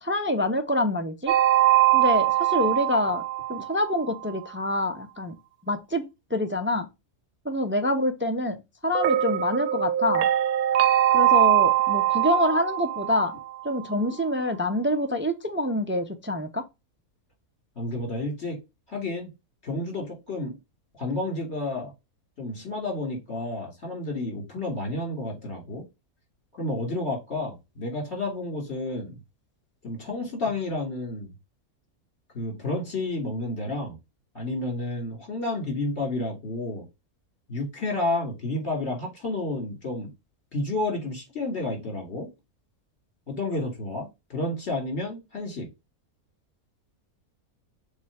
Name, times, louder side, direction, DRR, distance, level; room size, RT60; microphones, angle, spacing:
voice 1, 0.0-1.3 1.9-3.2 3.5-5.4 5.7-6.0 6.3-6.9 7.4-10.3 11.1-13.4 13.6-16.6, left 1 dB, 15° right, 0.4 m, -26 dB
sound 1, 1.3-4.2 8.9-13.9, right 13 dB, 80° right, 1.1 m, -22 dB
voice 2, 17.8-18.6 18.9-19.3 19.6-20.6 20.9-21.9 22.4-25.8 26.6-29.2 29.8-31.3 32.3-34.0 34.3-36.9 37.5-40.1 40.5-42.3 43.3-45.7, left 2 dB, 45° left, 3.1 m, -30 dB
6.9 x 2.8 x 4.8 m
omnidirectional pair, 1.6 m